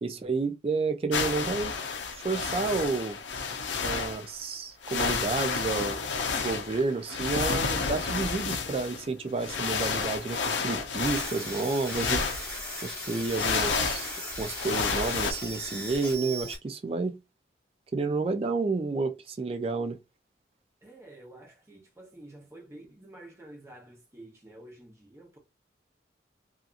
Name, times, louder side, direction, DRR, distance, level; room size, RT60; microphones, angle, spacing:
voice 1, 0.0-1.7 2.2-3.2 3.8-6.0 6.4-12.2 12.8-14.1 14.4-17.2 17.9-20.0, right 3 dB, 30° right, 0.3 m, -30 dB
sound 1, 1.1-4.3 4.8-12.8 13.2-15.3, left 5 dB, 85° left, 0.6 m, -31 dB
sound 2, 11.0-16.6, equal, 15° left, 1.0 m, -37 dB
voice 2, 20.8-25.4, right 1 dB, 15° right, 0.8 m, -50 dB
2.7 x 2.4 x 2.4 m
head